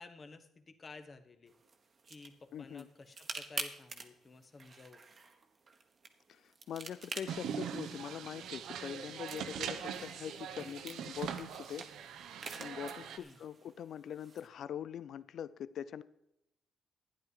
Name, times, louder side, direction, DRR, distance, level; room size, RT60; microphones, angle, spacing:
voice 1, 0.0-1.5 2.1-5.0 13.1-13.4, left 3 dB, 35° left, 8 dB, 1.3 m, -53 dB
sound 1, 1.5-14.5, right 4 dB, 40° right, 1.2 m, -49 dB
voice 2, 2.5-2.9 6.3-11.9 12.1-12.3 12.6-16.0, left 9 dB, 65° left, 17 dB, 0.4 m, -43 dB
sound 2, 7.3-13.2, right 8 dB, 80° right, 0.8 m, -42 dB
12.0 x 9.8 x 4.9 m, 0.80 s
cardioid pair, 90°, 0 cm